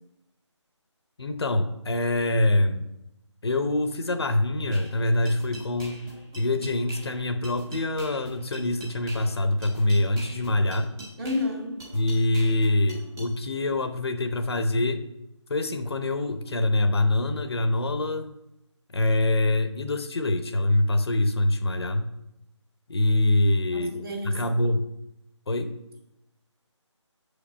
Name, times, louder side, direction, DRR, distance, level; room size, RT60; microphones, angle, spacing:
voice 1, 1.2-2.9 3.4-10.9 11.9-15.0 15.5-18.3 18.9-22.1 22.9-24.0 24.2-24.9 25.5-25.7, left 2 dB, 55° left, 8 dB, 0.9 m, -25 dB
sound 1, 4.7-13.3, right 1 dB, 5° right, 0.6 m, -44 dB
voice 2, 11.2-11.8 23.7-24.6, left 2 dB, 50° right, 0 dB, 2.3 m, -31 dB
6.5 x 5.3 x 6.9 m, 0.88 s
figure-of-eight pair, 165°, 16 cm